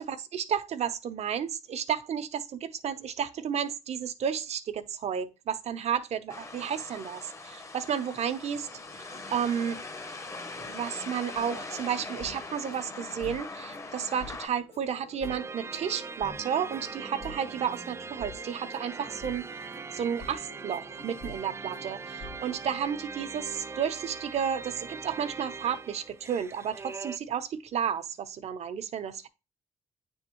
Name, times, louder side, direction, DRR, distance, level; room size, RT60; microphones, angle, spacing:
voice 1, 0.0-8.7 9.3-9.8 10.6-19.5 19.9-29.3, right 8 dB, 65° right, 0.8 m, -32 dB
sound 1, 6.3-14.5, left 3 dB, 25° left, 0.9 m, -41 dB
sound 2, 11.4-22.6, left 3 dB, 55° left, 1.4 m, -49 dB
sound 3, 15.2-27.2, right 4 dB, 20° right, 0.3 m, -41 dB
8.9 x 3.6 x 2.9 m
supercardioid pair, 65°, 12 cm